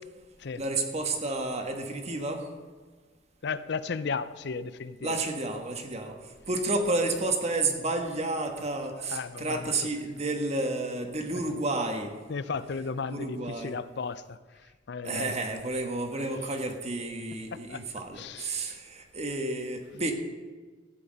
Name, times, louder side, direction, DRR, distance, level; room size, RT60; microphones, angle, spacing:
voice 1, 0.6-2.5 5.0-12.1 13.1-13.7 15.0-20.1, right 2 dB, 35° right, 4 dB, 1.4 m, -31 dB
voice 2, 3.4-5.2 9.1-9.7 12.3-14.4 14.9-15.4 16.2-16.3 17.5-17.8 18.1-18.8, left 5 dB, 65° left, 15 dB, 0.5 m, -35 dB
14.5 x 8.5 x 5.4 m, 1.5 s
head